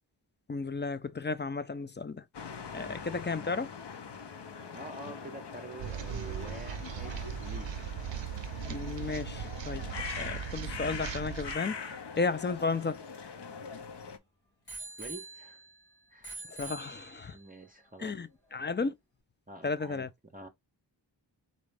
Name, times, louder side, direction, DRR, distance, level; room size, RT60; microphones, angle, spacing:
voice 1, 0.5-2.2 2.7-3.7 8.7-9.9 10.2-11.8 12.2-13.0 16.5-17.4 18.0-18.9 19.6-20.1, left 4 dB, 25° left, 0.4 m, -33 dB
sound 1, 2.3-14.2, left 6 dB, 65° left, 0.7 m, -43 dB
voice 2, 2.7-3.1 4.7-7.7 15.0-15.6 16.1-16.4 17.3-18.2 19.5-20.1 20.3-20.5, right 2 dB, 20° right, 0.6 m, -46 dB
sound 2, 5.8-11.6, right 8 dB, 75° right, 0.5 m, -38 dB
Bicycle bell, 12.4-14.0 14.7-15.8 16.2-17.5 18.2-18.3, right 3 dB, 85° left, 2.4 m, -46 dB
4.1 x 2.4 x 3.3 m
wide cardioid pair, 55°, 45 cm